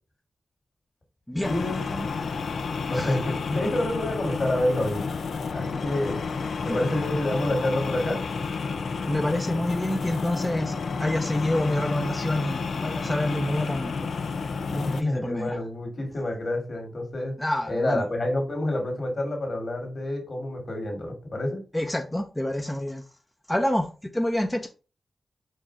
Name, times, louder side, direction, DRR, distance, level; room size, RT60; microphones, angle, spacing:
sound 1, 1.4-15.0, left 4 dB, 75° left, 0.4 m, -31 dB
voice 1, 1.5-2.0 2.9-5.2 5.5-6.2 6.6-8.2 14.8-17.3 17.7-21.6, left 1 dB, 55° left, 2 dB, 1.9 m, -28 dB
voice 2, 9.1-10.7 11.0-13.9 14.7-15.6 17.4-18.0 21.7-23.0 23.5-24.7, left 1 dB, 10° left, 4 dB, 0.6 m, -27 dB
4.6 x 2.5 x 4.4 m, 0.34 s
cardioid pair, 60°, 0 cm